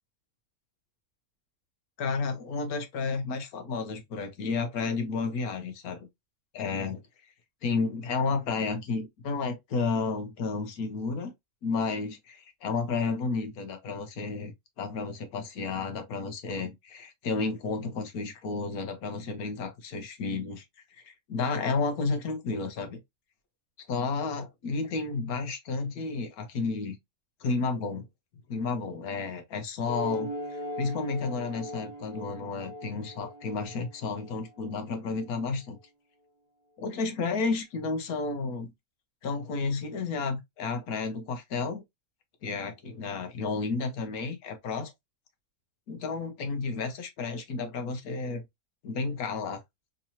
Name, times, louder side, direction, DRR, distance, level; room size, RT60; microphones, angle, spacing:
voice 1, 2.0-6.1 6.5-7.0 7.6-11.3 11.6-20.6 20.9-23.0 23.9-27.0 27.4-28.1 28.5-35.8 36.8-38.7 39.2-41.8 42.4-44.9 45.9-48.4 48.8-49.6, left 4 dB, 90° left, 1.4 m, -32 dB
sound 1, 29.9-34.8, left 1 dB, 35° right, 0.9 m, -39 dB
3.8 x 2.8 x 2.7 m
omnidirectional pair, 1.5 m